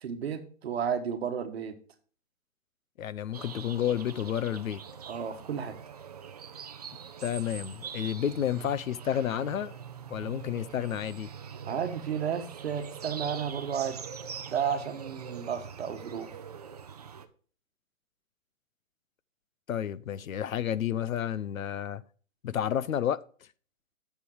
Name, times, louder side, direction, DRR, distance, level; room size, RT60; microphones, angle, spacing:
voice 1, 0.0-1.8 5.1-5.8 11.7-14.0 14.5-16.3, right 7 dB, 50° right, 1.5 m, -32 dB
voice 2, 3.0-4.8 7.2-9.7 10.1-11.3 19.7-22.0 22.4-23.2, left 10 dB, 85° left, 0.7 m, -30 dB
sound 1, 3.3-17.3, right 7 dB, 30° right, 0.6 m, -43 dB
8.6 x 6.9 x 4.7 m
hypercardioid pair, 165°, 40 cm